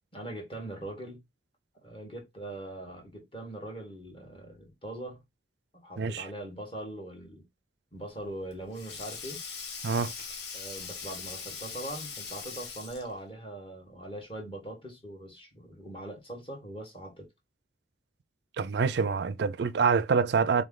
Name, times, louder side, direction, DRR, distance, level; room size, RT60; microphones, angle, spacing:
voice 1, 0.1-1.2 1.8-5.2 5.8-7.4 7.9-9.4 10.5-17.3, right 1 dB, 30° left, 1.4 m, -41 dB
Sink (filling or washing), 8.1-13.2, left 5 dB, 60° left, 0.9 m, -41 dB
voice 2, 18.6-20.6, right 5 dB, 60° right, 0.4 m, -26 dB
3.6 x 3.1 x 3.8 m
head